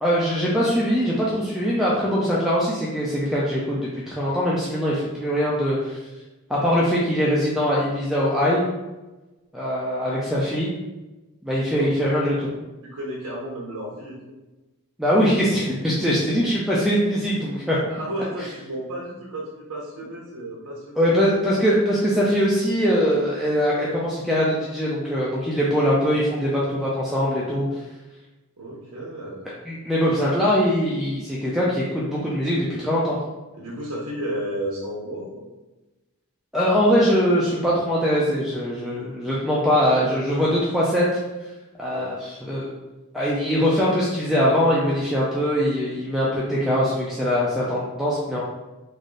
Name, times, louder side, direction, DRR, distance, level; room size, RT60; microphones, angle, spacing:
voice 1, 0.0-6.0 6.5-8.6 9.5-10.7 11.4-12.5 15.0-17.8 21.0-27.6 29.7-33.2 36.5-41.1 41.8-42.7 43.1-48.4, equal, ahead, -6 dB, 0.5 m, -22 dB
voice 2, 12.8-14.3 17.9-21.2 28.6-29.5 33.5-35.5 41.9-42.1, right 1 dB, 85° right, -4 dB, 0.9 m, -33 dB
3.5 x 2.6 x 3.8 m, 1.1 s
head